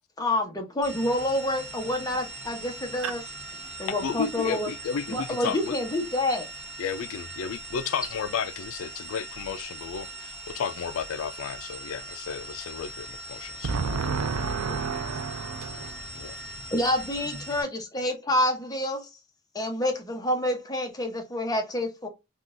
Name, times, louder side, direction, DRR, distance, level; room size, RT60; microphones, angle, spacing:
voice 1, 0.2-3.2 3.8-4.7 5.1-6.5 16.7-19.1 19.5-22.1, left 1 dB, 20° left, 0.8 m, -28 dB
sound 1, 0.8-17.6, right 1 dB, 55° right, 1.2 m, -41 dB
voice 2, 4.0-5.8 6.8-13.7 15.7-15.9 16.1-16.4, left 7 dB, 70° left, 0.3 m, -33 dB
voice 3, 13.6-16.7, right 5 dB, 75° right, 0.4 m, -31 dB
3.7 x 2.3 x 2.5 m
head